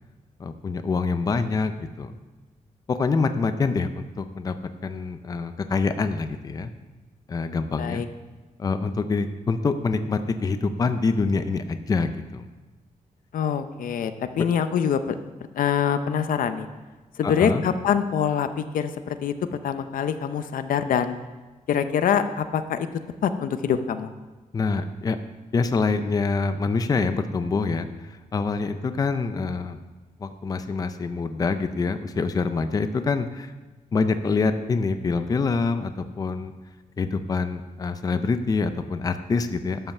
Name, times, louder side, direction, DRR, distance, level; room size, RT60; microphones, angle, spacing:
voice 1, 0.4-2.1 2.9-6.7 7.3-8.0 8.6-12.4 14.4-14.5 17.2-17.6 24.5-25.2 25.5-29.8 30.2-33.5 33.9-36.5 37.0-39.8, left 4 dB, 25° left, 9 dB, 0.5 m, -25 dB
voice 2, 13.3-15.1 15.5-16.7 17.2-19.3 19.6-21.2 21.7-22.9 23.2-24.1, left 8 dB, 80° left, 10 dB, 0.7 m, -24 dB
12.0 x 5.6 x 6.7 m, 1.2 s
wide cardioid pair, 175°, 14 cm